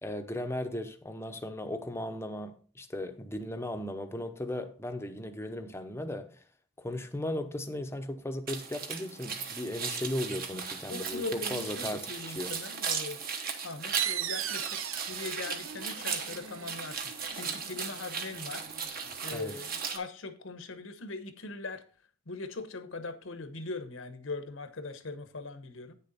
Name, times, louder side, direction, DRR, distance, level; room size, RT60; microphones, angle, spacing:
voice 1, 0.0-6.4 6.8-12.1 12.3-12.5 19.3-19.6, left 1 dB, 10° left, 0.7 m, -36 dB
sound 1, 8.5-20.0, right 6 dB, 45° right, 1.2 m, -37 dB
voice 2, 10.9-13.2 13.6-14.8 15.1-18.7 19.2-21.8 22.3-25.9, left 3 dB, 70° left, 1.0 m, -40 dB
sound 2, 13.9-19.2, right 11 dB, 75° right, 0.5 m, -39 dB
9.3 x 6.8 x 4.1 m
head